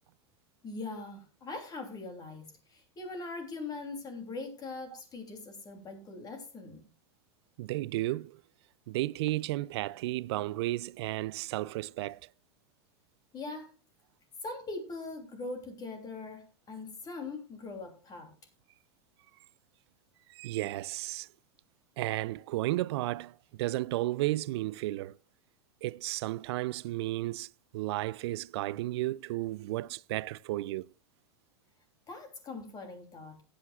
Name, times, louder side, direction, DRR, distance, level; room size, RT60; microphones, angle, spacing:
voice 1, 0.6-6.8 13.3-13.7 14.4-18.3 32.1-33.4, left 3 dB, 25° left, 2.9 m, -41 dB
voice 2, 7.6-8.4 8.9-12.2 20.4-21.3 22.0-25.2 25.8-27.5 27.7-30.9, right 17 dB, 70° right, 0.4 m, -33 dB
18.0 x 8.6 x 2.4 m
hypercardioid pair, 120°, 14 cm